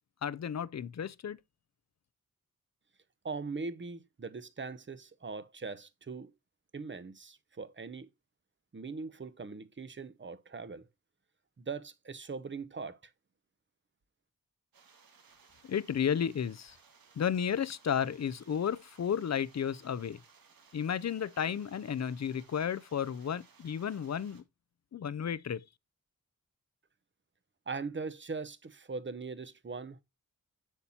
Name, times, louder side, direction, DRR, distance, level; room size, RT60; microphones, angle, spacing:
voice 1, 0.2-1.4 15.6-16.8 17.2-20.2 20.7-24.4 24.9-25.6, left 8 dB, 50° left, 0.5 m, -33 dB
voice 2, 3.2-6.3 6.7-8.1 8.7-10.8 11.6-13.1 27.7-30.0, right 4 dB, 35° right, 0.8 m, -41 dB
sound 1, 14.7-24.4, right 5 dB, 85° right, 1.7 m, -62 dB
8.1 x 7.2 x 2.8 m
wide cardioid pair, 90°, 34 cm